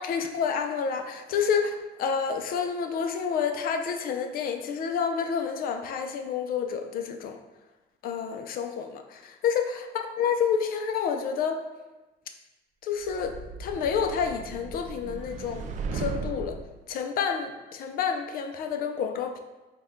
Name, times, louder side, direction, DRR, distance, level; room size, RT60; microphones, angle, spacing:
voice 1, 0.0-7.4 8.0-11.6 12.8-16.6 16.9-19.4, left 6 dB, 60° left, 6 dB, 0.4 m, -29 dB
sound 1, 13.0-16.7, right 4 dB, 45° right, 0.4 m, -36 dB
4.0 x 2.2 x 3.6 m, 1.1 s
cardioid pair, 110°, 17 cm